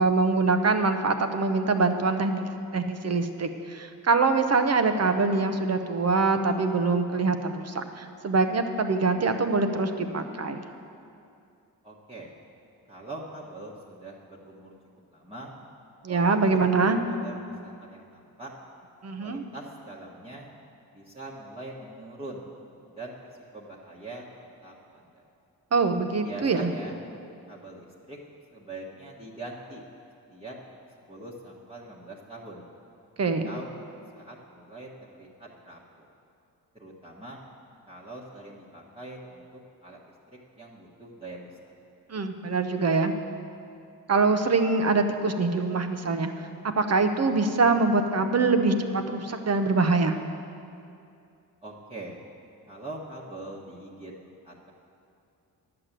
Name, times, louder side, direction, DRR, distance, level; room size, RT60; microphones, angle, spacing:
voice 1, 0.0-2.4 2.7-10.6 16.0-17.0 19.0-19.4 25.7-26.7 33.2-33.5 42.1-43.1 44.1-50.2, right 3 dB, 40° right, 7 dB, 0.9 m, -24 dB
voice 2, 11.8-12.3 12.9-14.7 15.1-15.5 16.1-17.3 17.6-18.5 19.2-20.5 20.9-22.5 22.9-23.2 23.5-24.3 24.6-25.2 26.2-26.9 27.5-28.2 28.5-29.8 30.3-30.5 31.1-32.7 33.4-33.7 34.1-36.0 36.7-37.4 37.9-40.0 40.6-41.7 51.6-52.2 52.7-54.1 54.4-54.7, right 2 dB, 15° right, -6 dB, 1.5 m, -43 dB
11.0 x 6.8 x 7.5 m, 2.6 s
cardioid pair, 75°, 38 cm